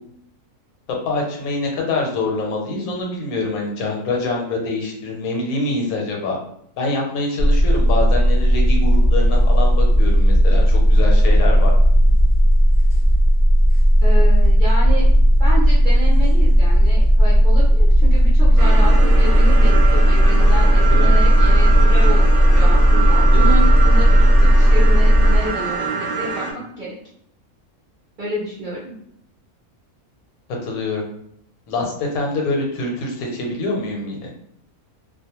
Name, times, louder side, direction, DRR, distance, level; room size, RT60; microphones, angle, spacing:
voice 1, 0.9-6.4 6.8-11.7 20.8-21.1 23.3-23.5 30.6-31.0 31.7-34.3, left 2 dB, 80° left, 0 dB, 1.1 m, -25 dB
sound 1, 7.4-25.4, equal, 5° right, 0.5 m, -13 dB
voice 2, 14.0-15.1 15.4-27.0 28.2-28.9, right 1 dB, 55° right, -7 dB, 0.5 m, -29 dB
sound 2, 18.6-26.5, right 5 dB, 70° right, 0.9 m, -25 dB
2.3 x 2.2 x 2.8 m, 0.70 s
omnidirectional pair, 1.5 m